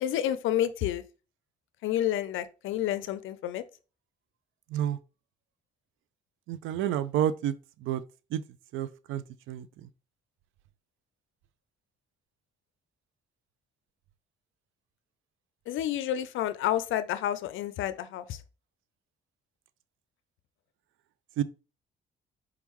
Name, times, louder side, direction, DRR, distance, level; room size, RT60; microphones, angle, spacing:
voice 1, 0.0-1.0 1.8-3.6 15.7-18.4, left 12 dB, 80° left, 0.4 m, -29 dB
voice 2, 6.5-7.5 7.9-8.0 8.3-8.4 8.7-9.6 21.4-21.5, right 11 dB, 80° right, 0.4 m, -29 dB
4.7 x 3.6 x 3.0 m
cardioid pair, 90°, 20 cm